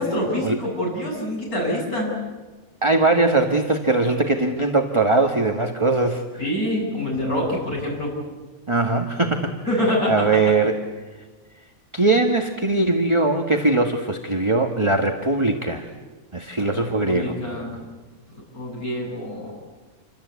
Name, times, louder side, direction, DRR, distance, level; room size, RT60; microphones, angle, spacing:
voice 1, 0.0-2.2 6.4-8.1 9.7-10.2 16.6-17.8 18.5-19.5, left 1 dB, 85° left, -3 dB, 8.0 m, -26 dB
voice 2, 2.8-6.2 8.7-9.8 10.1-10.8 11.9-15.9 16.3-17.4, right 2 dB, 20° right, 4 dB, 1.6 m, -20 dB
28.5 x 24.5 x 8.3 m, 1.2 s
omnidirectional pair, 1.5 m